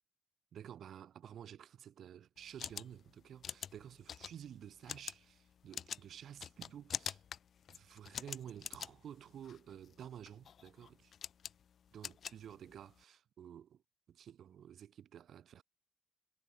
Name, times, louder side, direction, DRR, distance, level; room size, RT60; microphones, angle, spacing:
voice 1, 0.5-7.2 7.7-11.1 11.9-13.8 14.1-15.6, right 9 dB, 80° right, 1.5 m, -52 dB
sound 1, 2.4-13.0, left 8 dB, 70° left, 0.4 m, -47 dB
supercardioid pair, 45°, 0 cm